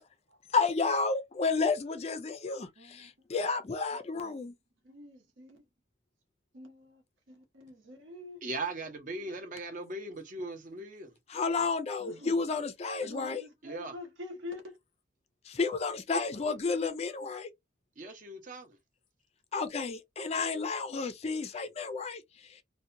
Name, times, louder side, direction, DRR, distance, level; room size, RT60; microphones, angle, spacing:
voice 1, 0.5-4.5 11.3-13.4 15.5-17.5 19.5-22.2, left 4 dB, 30° left, 0.4 m, -31 dB
voice 2, 2.8-3.1 4.1-4.4 4.8-5.6 6.5-7.0 7.3-8.4 11.6-11.7 12.0-12.5 13.0-14.8 16.3-16.4, left 2 dB, 70° right, 1.0 m, -46 dB
voice 3, 8.4-11.1 13.6-14.0 18.0-18.8, right 2 dB, 40° right, 0.6 m, -39 dB
2.7 x 2.1 x 2.5 m
head